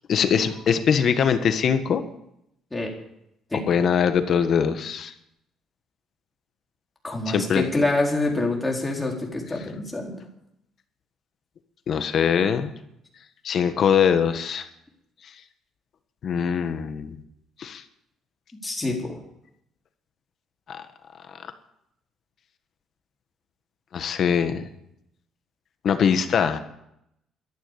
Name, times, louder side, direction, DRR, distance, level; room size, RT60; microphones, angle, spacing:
voice 1, 0.1-2.0 3.7-5.1 7.3-7.6 11.9-12.7 13.4-14.6 16.2-17.2 17.6-17.8 20.7-20.8 23.9-24.7 25.8-26.6, left 7 dB, 55° left, 8 dB, 1.5 m, -22 dB
voice 2, 7.0-10.1 18.6-19.2, left 2 dB, 10° left, 0 dB, 4.3 m, -26 dB
13.0 x 11.0 x 8.3 m, 0.78 s
cardioid pair, 105°, 0 cm